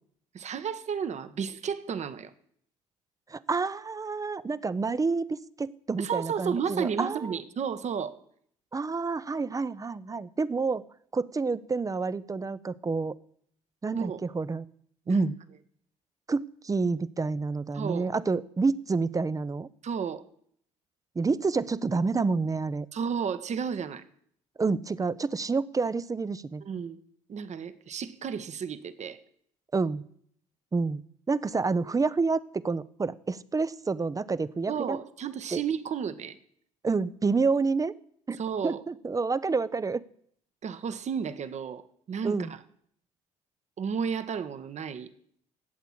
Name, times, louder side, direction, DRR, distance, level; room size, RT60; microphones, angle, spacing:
voice 1, 0.3-2.3 6.0-8.1 13.9-14.2 15.1-15.3 17.7-18.1 19.8-20.2 22.9-24.0 26.6-27.0 27.3-29.2 34.7-36.4 38.4-38.8 40.6-41.8 42.1-42.4 43.8-45.1, right 7 dB, 45° right, 11 dB, 1.2 m, -32 dB
voice 2, 3.3-7.3 8.7-10.8 11.1-13.2 13.8-14.7 15.1-15.4 16.3-19.7 21.2-22.9 24.6-26.6 29.7-30.0 30.7-31.0 31.3-35.0 35.5-35.6 36.8-37.9 38.3-40.0 42.2-42.5, right 4 dB, 20° right, 17 dB, 0.8 m, -28 dB
13.5 x 8.2 x 8.7 m, 0.65 s
hypercardioid pair, 55°, 16 cm